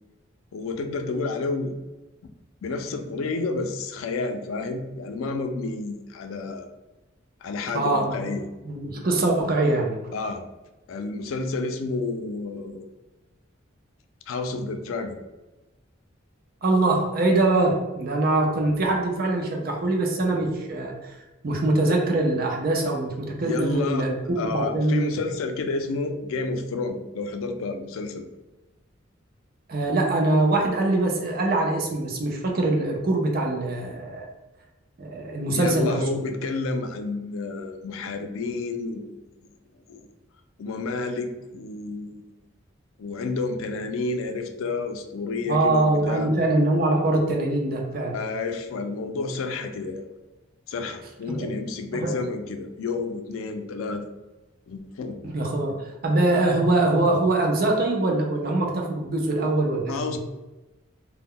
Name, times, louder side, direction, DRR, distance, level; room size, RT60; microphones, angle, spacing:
voice 1, 0.5-1.7 2.6-6.7 7.4-8.5 10.1-10.4 10.9-12.9 14.3-15.2 23.4-28.3 35.5-39.3 39.9-40.1 40.6-42.3 43.0-46.3 48.1-50.0 50.7-54.1 54.7-55.2 59.9-60.2, left 3 dB, 85° left, 6 dB, 0.3 m, -30 dB
voice 2, 7.7-8.2 8.6-10.0 16.6-21.1 21.4-25.0 29.7-34.3 35.0-36.0 45.5-48.2 51.3-51.5 51.9-52.1 55.2-55.8 56.0-60.2, right 2 dB, 45° right, 0 dB, 0.5 m, -23 dB
2.1 x 2.1 x 3.6 m, 1.1 s
head